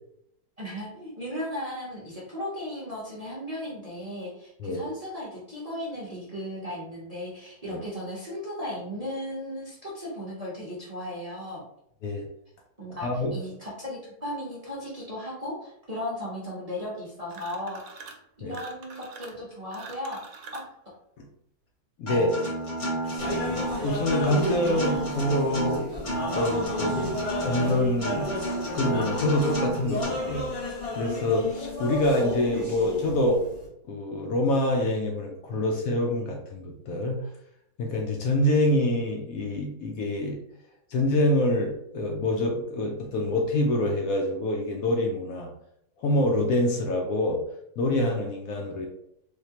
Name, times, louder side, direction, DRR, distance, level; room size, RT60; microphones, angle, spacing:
voice 1, 0.6-11.6 12.8-18.0 18.4-20.2 20.5-20.6 22.1-22.2, left 1 dB, 30° right, -7 dB, 0.7 m, -36 dB
voice 2, 13.0-13.3 18.4-18.6 21.2-21.3 22.0-22.3 23.0-23.3 23.8-30.6 30.9-33.4 33.9-37.3 37.8-40.4 40.9-45.5 46.0-47.4 47.8-48.9, left 1 dB, 70° left, 1 dB, 0.9 m, -26 dB
sound 1, 17.3-18.2 18.5-20.7, right 5 dB, 75° right, 1.1 m, -45 dB
Acoustic guitar, 22.1-30.0, right 1 dB, 50° left, 1.8 m, -31 dB
sound 2, 23.2-33.7, left 1 dB, 30° left, 1.0 m, -33 dB
3.5 x 2.8 x 2.8 m, 0.76 s
omnidirectional pair, 1.7 m